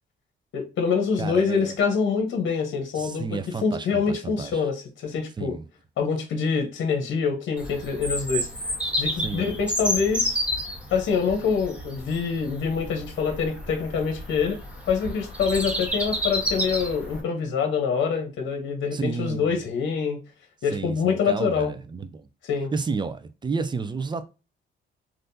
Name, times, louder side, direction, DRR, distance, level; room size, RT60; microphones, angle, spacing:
voice 1, 0.5-5.6 6.0-8.5 9.0-10.4 10.9-14.6 14.9-20.2 20.6-21.7 22.5-22.7, left 5 dB, 70° left, 0.9 m, -25 dB
voice 2, 1.2-1.7 2.9-4.6 5.4-5.7 9.2-9.6 18.9-19.5 20.7-22.3 22.7-24.3, right 4 dB, 25° right, 0.4 m, -31 dB
Bird vocalization bird call bird song, 7.6-17.2, equal, 5° right, 1.3 m, -30 dB
3.5 x 2.5 x 2.6 m
cardioid pair, 90°, 20 cm